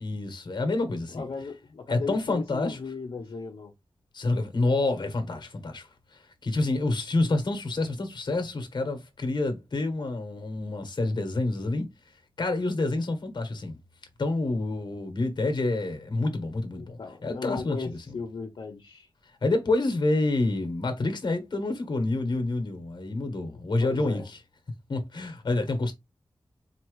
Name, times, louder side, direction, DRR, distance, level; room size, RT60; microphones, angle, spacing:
voice 1, 0.0-1.3 1.9-2.8 4.1-11.9 12.4-13.8 14.2-18.1 19.4-24.4 24.9-25.9, left 2 dB, 55° left, 1.3 m, -28 dB
voice 2, 1.1-3.7 16.8-19.1 23.8-24.2, left 4 dB, 75° left, 0.8 m, -36 dB
4.4 x 2.9 x 3.1 m
wide cardioid pair, 115°, 9 cm